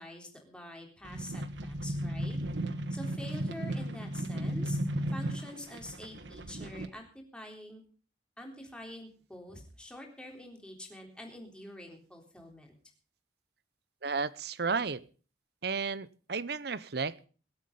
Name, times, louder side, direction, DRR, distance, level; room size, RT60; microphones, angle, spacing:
voice 1, 0.0-2.4 2.9-4.8 5.1-7.8 8.4-12.8, left 1 dB, 5° left, 1 dB, 3.7 m, -46 dB
sound 1, 1.0-6.9, right 1 dB, 85° right, 1.2 m, -35 dB
voice 2, 14.0-15.0 15.6-17.3, right 4 dB, 60° right, 18 dB, 0.8 m, -33 dB
23.0 x 8.4 x 5.4 m, 0.39 s
head